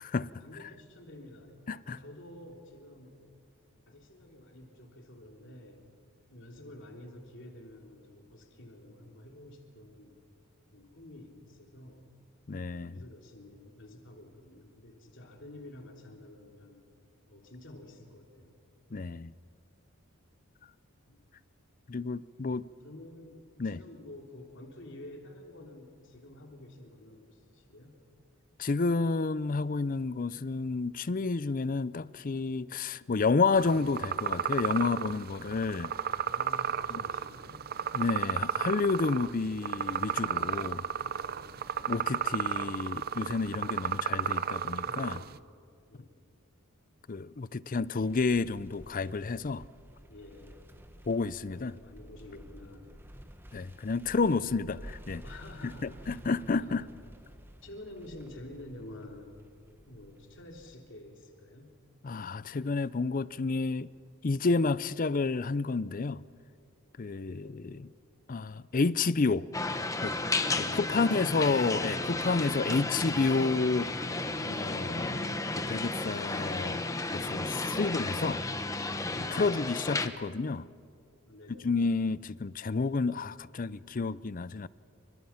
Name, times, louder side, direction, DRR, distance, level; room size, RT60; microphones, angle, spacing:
voice 1, 0.4-1.5 1.8-3.2 3.9-5.9 6.3-10.1 10.7-12.0 12.7-16.8 17.3-18.5 21.1-21.3 22.8-28.0 36.2-37.6 41.0-41.6 44.4-45.5 45.9-46.2 50.1-50.6 51.0-52.9 54.4-54.8 55.2-56.2 56.5-56.9 57.6-59.4 59.9-61.7 67.2-67.6 70.9-71.5 79.3-79.8 81.2-81.8, left 1 dB, 60° left, 3.2 m, -50 dB
voice 2, 12.5-13.0 18.9-19.3 21.9-22.7 23.6-23.8 28.6-35.9 36.9-37.0 37.9-40.8 41.8-45.2 47.1-49.6 51.1-51.7 53.5-55.2 55.8-56.9 62.0-63.9 64.2-66.2 67.0-67.8 68.3-69.5 70.0-70.1 70.6-74.1 74.4-75.3 75.6-76.8 77.1-78.4 79.2-80.7 81.6-84.7, left 4 dB, 40° left, 0.5 m, -30 dB
sound 1, 33.6-45.4, right 8 dB, 45° right, 0.5 m, -33 dB
sound 2, 48.0-60.8, equal, 10° right, 1.1 m, -52 dB
sound 3, 69.5-80.1, left 2 dB, 15° left, 1.0 m, -33 dB
28.5 x 25.5 x 5.8 m
head